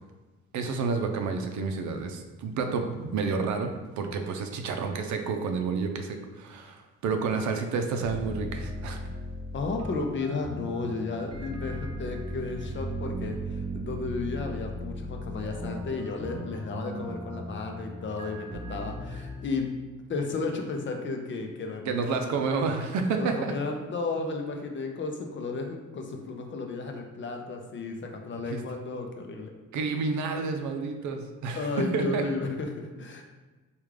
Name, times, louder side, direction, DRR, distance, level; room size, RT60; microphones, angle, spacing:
voice 1, 0.5-3.7 4.0-9.0 21.9-23.5 28.5-28.6 29.7-31.7 31.9-32.2, right 4 dB, 70° right, 6 dB, 0.5 m, -30 dB
sound 1, 8.0-19.6, equal, 20° right, 0.4 m, -37 dB
voice 2, 9.5-19.7 20.1-22.4 23.2-29.5 31.6-33.2, left 3 dB, 40° left, 3 dB, 0.5 m, -33 dB
3.5 x 2.4 x 3.2 m, 1.2 s
cardioid pair, 90°, 30 cm